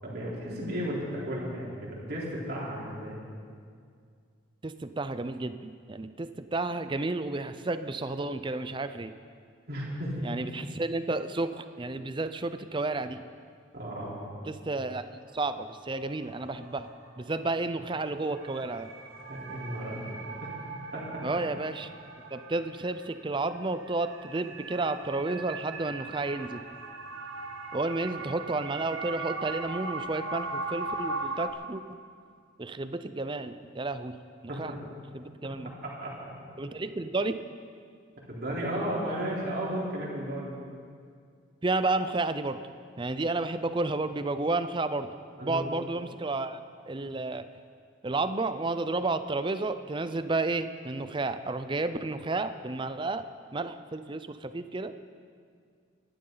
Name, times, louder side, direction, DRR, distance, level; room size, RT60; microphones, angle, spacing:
voice 1, 0.0-3.2 9.7-10.2 13.7-14.4 19.3-20.5 20.9-21.0 21.3-21.4 34.5-34.8 35.8-36.3 38.3-40.5 45.4-45.6, equal, 50° right, -5 dB, 4.0 m, -34 dB
voice 2, 4.6-9.1 10.2-13.2 14.5-16.9 17.2-18.9 21.2-21.9 22.3-26.6 27.7-32.0 32.6-34.1 34.6-34.7 35.1-35.7 36.6-37.4 41.6-42.6 43.0-45.1 45.4-46.6 46.9-47.4 48.0-53.2 53.5-54.9, right 2 dB, 25° right, 11 dB, 0.5 m, -31 dB
sound 1, 15.7-15.8 16.2-31.5, right 3 dB, 85° right, 1.6 m, -40 dB
25.5 x 11.5 x 4.0 m, 2.1 s
head